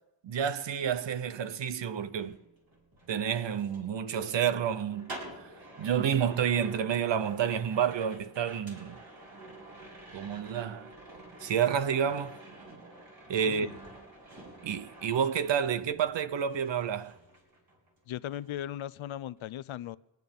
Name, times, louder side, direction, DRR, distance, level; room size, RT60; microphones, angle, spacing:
voice 1, 0.2-2.4 3.1-5.1 5.8-9.0 10.1-10.9 11.4-12.4 13.3-13.7 14.6-17.1, right 8 dB, 60° right, 0.9 m, -29 dB
sound 1, 2.1-16.2 16.5-18.0 18.2-18.6, right 2 dB, 45° right, 5.0 m, -49 dB
voice 2, 13.5-13.8 18.1-20.0, left 12 dB, 75° left, 0.6 m, -37 dB
25.0 x 9.2 x 5.3 m
wide cardioid pair, 120°, 49 cm